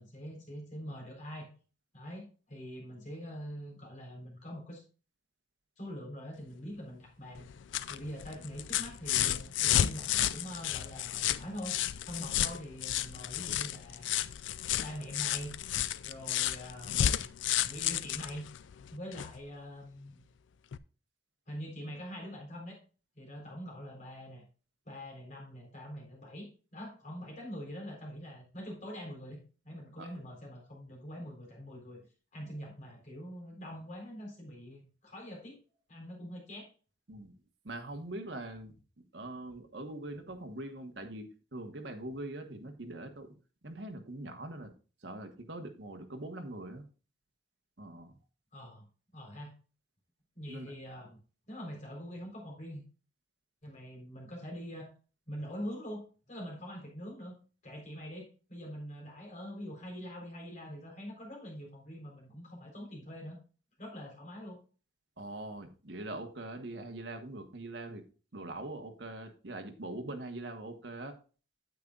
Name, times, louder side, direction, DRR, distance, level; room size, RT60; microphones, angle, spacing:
voice 1, 0.0-1.5 1.9-4.8 5.8-7.5 7.9-11.8 12.0-14.1 14.8-15.7 16.0-17.3 17.6-18.4 18.9-20.2 21.5-22.8 23.2-24.4 24.9-29.4 29.6-32.0 32.3-35.6 35.9-36.7 48.5-48.8 49.1-49.5 50.3-51.2 51.5-52.8 53.6-54.9 55.3-57.4 57.6-63.4 63.8-64.6, equal, 45° left, 0 dB, 4.0 m, -44 dB
sound 1, 7.3-19.4 20.7-20.8, left 11 dB, 90° left, 0.4 m, -32 dB
voice 2, 37.6-38.7 39.1-43.3 43.6-44.7 45.0-46.8 47.8-48.1 50.5-50.7 65.2-68.0 68.3-71.1, right 2 dB, 70° right, 5 dB, 1.3 m, -42 dB
9.2 x 8.2 x 2.4 m, 0.36 s
head